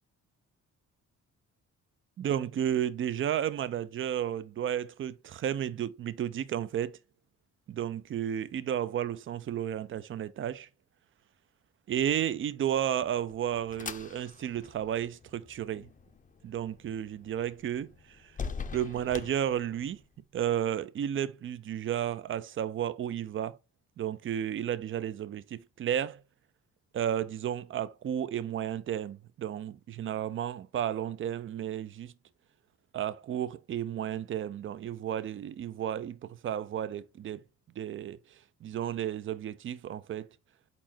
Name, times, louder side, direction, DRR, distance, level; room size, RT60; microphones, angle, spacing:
voice 1, 2.2-7.0 7.7-10.7 11.9-15.9 16.4-18.3 18.7-20.0 20.3-23.6 24.0-26.2 26.9-32.1 32.9-37.4 37.8-38.2 38.6-40.3, right 10 dB, 45° right, 0.5 m, -32 dB
sound 1, 12.8-20.1, left 5 dB, 25° left, 0.6 m, -44 dB
4.3 x 4.2 x 2.8 m
cardioid pair, 90°, 30 cm